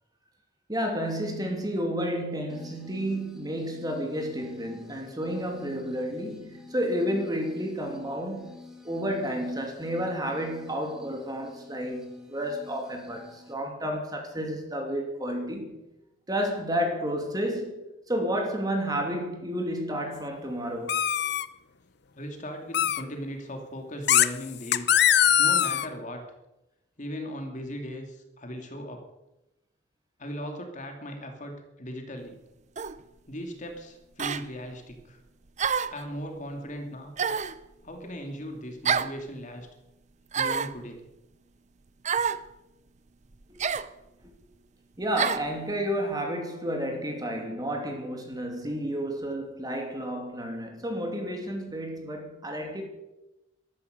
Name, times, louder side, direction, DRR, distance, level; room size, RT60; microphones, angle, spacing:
voice 1, 0.7-8.6 8.8-15.8 16.3-21.0 43.5-43.6 44.2-44.3 45.0-52.8, equal, 20° right, 2.7 m, -31 dB
sound 1, 2.5-13.5, left 2 dB, 5° right, 2.2 m, -49 dB
sound 2, 20.9-21.5 22.7-23.0 24.1-24.3 24.7-25.9, left 10 dB, 55° left, 0.7 m, -21 dB
voice 2, 22.1-24.9 25.4-26.2 27.0-29.0 30.2-32.4 33.3-35.2 35.9-37.1 37.8-39.7 40.3-41.0, equal, 40° left, 2.7 m, -38 dB
sound 3, 32.8-33.0 34.2-34.4 35.6-36.0 37.2-37.6 38.8-39.2 40.3-40.8 42.0-42.4 43.6-43.9 45.2-45.5, right 6 dB, 35° right, 0.6 m, -27 dB
13.5 x 13.5 x 6.7 m
head